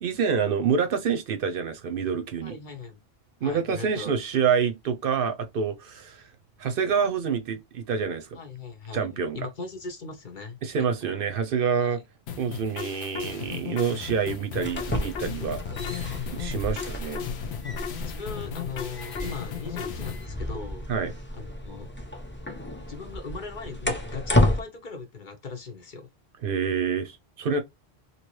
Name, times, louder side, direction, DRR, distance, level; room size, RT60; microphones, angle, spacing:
voice 1, 0.0-2.6 3.4-6.2 6.6-8.3 8.9-9.4 10.6-12.0 12.4-17.3 20.9-21.1 26.4-27.6, right 6 dB, 65° right, 0.7 m, -27 dB
voice 2, 2.4-3.0 3.4-4.1 8.3-11.1 11.8-12.0 15.7-16.4 18.0-21.9 22.9-26.1, left 5 dB, 55° left, 0.8 m, -39 dB
sound 1, 12.3-20.3, left 8 dB, 80° left, 0.9 m, -36 dB
sound 2, 14.5-24.6, left 1 dB, 15° left, 0.5 m, -31 dB
3.0 x 2.7 x 3.0 m
omnidirectional pair, 1.1 m